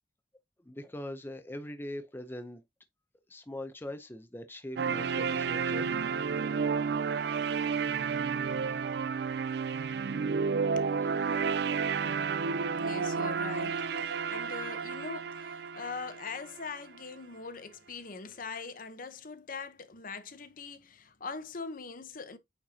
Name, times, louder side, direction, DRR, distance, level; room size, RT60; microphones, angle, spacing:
voice 1, 0.6-2.6 3.3-6.0 8.7-8.8 9.8-9.9, left 1 dB, 15° left, 0.7 m, -42 dB
sound 1, 4.8-16.8, right 5 dB, 65° right, 0.4 m, -31 dB
voice 2, 10.7-11.3 12.8-22.4, left 4 dB, 50° left, 0.9 m, -42 dB
8.7 x 4.5 x 2.8 m
head